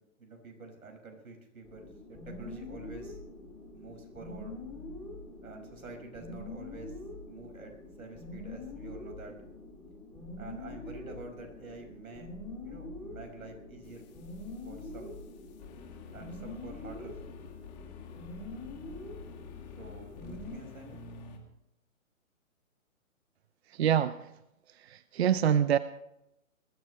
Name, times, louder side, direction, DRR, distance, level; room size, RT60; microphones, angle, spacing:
voice 1, 0.2-3.2 3.7-4.6 5.4-7.0 7.3-9.3 10.4-12.3 12.6-14.1 14.6-15.2 16.1-17.2 19.8-21.0, right 3 dB, 85° right, 3 dB, 6.0 m, -48 dB
sound 1, 1.6-20.6, left 2 dB, 5° left, 3.9 m, -44 dB
sound 2, 13.8-21.4, left 6 dB, 30° left, 2.2 m, -50 dB
voice 2, 23.7-24.3 24.7-25.8, right 9 dB, 50° right, 14 dB, 0.6 m, -26 dB
21.0 x 15.5 x 3.3 m, 0.84 s
hypercardioid pair, 155°, 41 cm